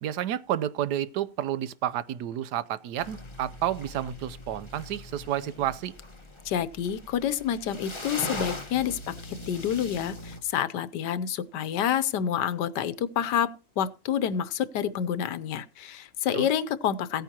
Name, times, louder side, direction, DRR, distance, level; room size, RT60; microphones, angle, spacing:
voice 1, 0.0-5.9 16.3-16.5, right 11 dB, 75° right, 1.3 m, -30 dB
sound 1, 3.0-10.4, left 2 dB, 20° left, 1.1 m, -40 dB
voice 2, 6.4-17.2, left 9 dB, 80° left, 1.4 m, -28 dB
17.0 x 9.3 x 2.9 m
omnidirectional pair, 1.8 m